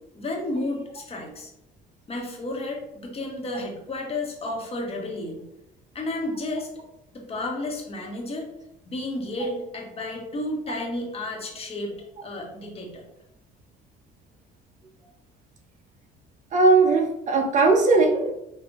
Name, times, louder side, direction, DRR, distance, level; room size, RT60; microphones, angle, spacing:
voice 1, 0.1-1.5 2.1-5.5 5.9-6.7 7.1-8.5 8.9-12.0 12.2-13.0, left 2 dB, 35° left, 0 dB, 1.3 m, -32 dB
voice 2, 16.5-18.3, right 3 dB, 45° right, 3 dB, 0.7 m, -19 dB
5.4 x 2.7 x 3.5 m, 0.86 s
cardioid pair, 110°, 17 cm